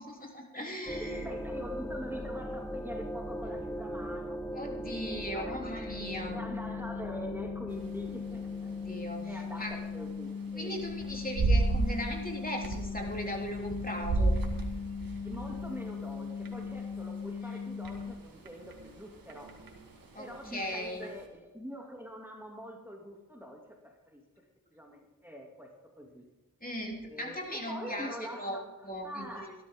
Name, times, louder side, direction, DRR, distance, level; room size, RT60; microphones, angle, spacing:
voice 1, 0.0-1.2 4.5-6.4 8.7-9.7 10.5-14.4 17.4-17.6 20.1-21.1 26.6-28.6 28.8-29.5, equal, 25° left, -1 dB, 3.4 m, -38 dB
sound 1, 0.9-10.0, equal, 10° left, 1.0 m, -40 dB
voice 2, 1.0-4.4 4.8-5.0 5.3-5.6 6.3-8.7 9.3-10.7 15.2-19.6 20.2-24.2 24.7-25.7 26.0-26.2 27.0-28.7 29.0-29.5, equal, 5° right, 0 dB, 2.7 m, -44 dB
sound 2, 5.9-18.1, left 6 dB, 90° left, 1.0 m, -39 dB
sound 3, 7.7-21.3, right 2 dB, 85° right, 2.0 m, -35 dB
16.0 x 13.5 x 3.8 m, 1.0 s
cardioid pair, 45°, 34 cm